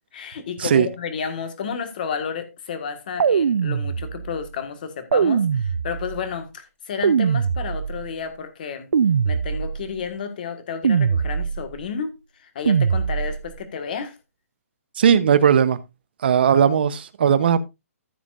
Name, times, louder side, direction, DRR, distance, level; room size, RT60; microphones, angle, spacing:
voice 1, 0.1-8.9 9.2-14.1, left 6 dB, 35° left, 1.6 m, -31 dB
sound 1, 3.2-4.4 5.1-6.3 7.0-8.2 8.9-10.0 10.8-11.8 12.7-13.6, right 6 dB, 80° right, 0.5 m, -22 dB
voice 2, 15.0-15.8 16.2-17.6, right 8 dB, 40° right, 0.8 m, -17 dB
14.5 x 7.2 x 2.5 m
hypercardioid pair, 175°, 8 cm